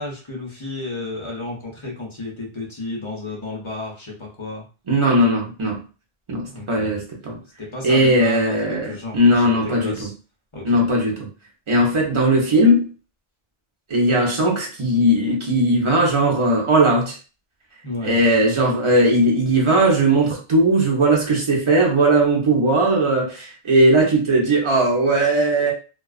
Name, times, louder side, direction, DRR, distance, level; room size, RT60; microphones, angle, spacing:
voice 1, 0.0-4.6 6.5-7.0 7.6-10.1 10.5-10.8 17.8-18.2, left 2 dB, 35° left, -1 dB, 0.6 m, -32 dB
voice 2, 4.9-5.8 6.3-7.4 7.8-10.1 10.6-11.3 11.7-12.9 13.9-17.2 18.0-25.7, right 1 dB, 35° right, -1 dB, 0.7 m, -18 dB
2.3 x 2.2 x 2.3 m, 0.34 s
omnidirectional pair, 1.1 m